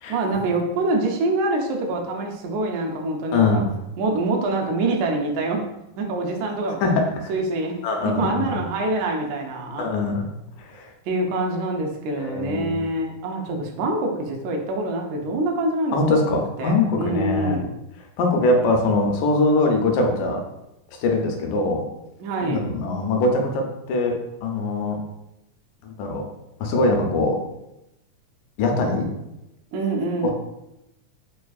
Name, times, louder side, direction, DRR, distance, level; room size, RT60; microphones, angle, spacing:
voice 1, 0.1-3.6 4.0-5.6 6.0-6.8 7.3-7.8 8.0-9.9 11.1-16.3 16.6-17.7 22.2-22.7 29.7-30.3, right 2 dB, 80° right, 1 dB, 1.7 m, -25 dB
voice 2, 3.3-3.7 6.8-7.3 7.8-8.6 9.8-10.3 10.6-10.9 12.2-12.7 15.9-17.6 18.2-20.4 21.0-21.8 22.4-24.1 24.4-25.0 26.0-26.2 26.6-27.4 28.6-29.1 30.2-30.3, left 2 dB, 80° left, 2 dB, 2.1 m, -22 dB
5.2 x 2.3 x 2.3 m, 0.89 s
omnidirectional pair, 3.8 m